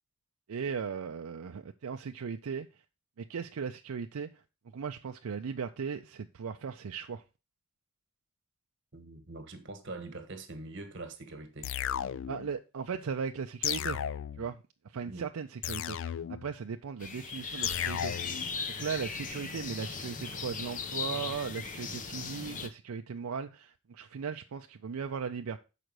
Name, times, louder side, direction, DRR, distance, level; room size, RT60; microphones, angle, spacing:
voice 1, 0.5-2.7 3.2-4.4 4.7-7.2 12.3-14.0 14.4-14.6 14.8-18.3 18.8-25.6, right 6 dB, 85° right, 0.5 m, -37 dB
voice 2, 8.9-11.7 15.0-15.3, right 2 dB, 60° right, 1.4 m, -43 dB
sound 1, 11.6-12.5 13.6-14.5 15.6-16.5 17.6-18.5, left 10 dB, 60° left, 0.3 m, -34 dB
sound 2, 17.0-22.7, left 5 dB, 40° left, 0.7 m, -38 dB
6.6 x 5.0 x 4.6 m
head